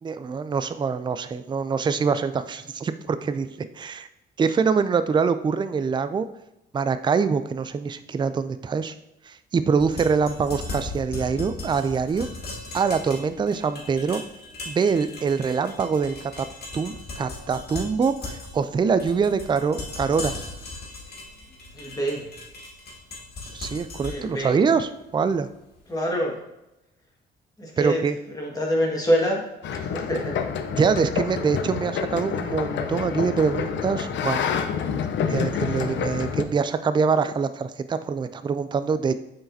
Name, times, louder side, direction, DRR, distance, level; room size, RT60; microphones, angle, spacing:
voice 1, 0.0-4.1 4.4-6.3 6.7-8.9 9.3-12.3 12.7-14.2 14.7-16.5 16.7-20.4 23.5-25.5 27.8-28.2 30.8-34.5 35.3-39.1, right 5 dB, 25° right, 11 dB, 0.4 m, -24 dB
sound 1, 9.7-25.8, left 2 dB, 50° left, 2.1 m, -38 dB
voice 2, 21.7-22.2 24.1-24.5 25.9-26.3 27.6-28.0 28.4-29.4 29.9-30.3, equal, 20° left, -2 dB, 1.6 m, -25 dB
sound 2, 29.6-36.4, left 7 dB, 70° left, 0.6 m, -28 dB
7.4 x 4.8 x 2.7 m, 0.90 s
cardioid pair, 90°, 20 cm